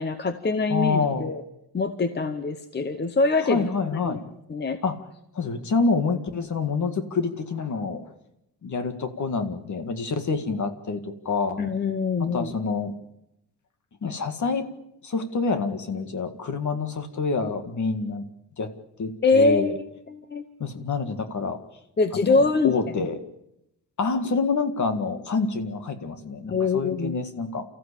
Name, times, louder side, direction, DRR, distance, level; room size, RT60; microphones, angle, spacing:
voice 1, 0.0-1.4 1.7-3.7 4.0-4.2 4.5-4.8 11.6-12.5 19.2-19.7 20.1-20.4 22.0-22.7 26.5-27.1, left 3 dB, 25° left, 9 dB, 0.9 m, -23 dB
voice 2, 0.7-1.3 3.4-4.2 4.8-5.0 5.3-8.1 8.6-11.6 12.2-12.9 14.0-14.7 15.0-18.3 18.6-18.7 19.0-19.7 20.6-21.6 22.1-23.2 24.0-27.6, left 4 dB, 45° left, 8 dB, 2.0 m, -27 dB
29.5 x 14.5 x 8.5 m, 0.86 s
wide cardioid pair, 180°, 41 cm